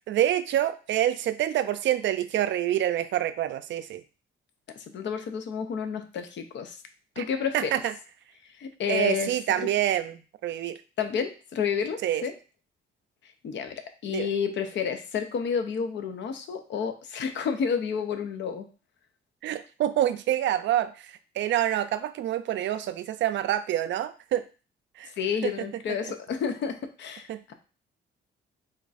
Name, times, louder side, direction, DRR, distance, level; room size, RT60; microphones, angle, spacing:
voice 1, 0.1-4.0 7.2-7.3 7.5-7.9 8.9-10.8 12.0-12.2 14.1-14.3 19.4-24.4 25.0-25.1 25.4-25.5 26.0-26.1 27.3-27.4, right 12 dB, 65° right, 11 dB, 0.4 m, -27 dB
voice 2, 4.7-6.8 7.2-7.7 8.6-9.7 11.0-12.3 13.4-18.7 25.2-27.5, left 6 dB, 65° left, 7 dB, 0.7 m, -30 dB
3.7 x 2.4 x 4.0 m, 0.35 s
cardioid pair, 90°, 20 cm